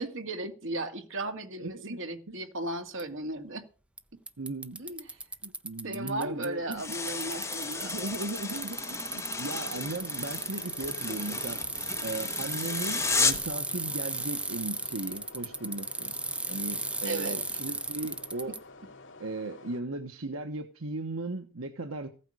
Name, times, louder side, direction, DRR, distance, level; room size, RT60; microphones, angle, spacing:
voice 1, 0.0-3.6 4.8-5.2 5.8-8.0 8.5-8.7 17.0-17.6, right 2 dB, 65° right, 2.2 m, -36 dB
voice 2, 1.6-2.0 2.3-2.4 4.4-4.8 5.4-6.8 7.8-11.6 12.0-16.1 16.5-18.6 19.2-22.1, right 2 dB, 85° right, 1.3 m, -37 dB
Bicycle, 3.0-3.1 4.0-4.1 4.3-6.5 6.7-18.6, right 2 dB, 5° right, 0.6 m, -35 dB
sound 1, 6.6-19.8, left 3 dB, 65° left, 2.6 m, -50 dB
sound 2, 6.8-13.5, left 4 dB, 15° left, 1.3 m, -33 dB
16.0 x 9.0 x 6.3 m
head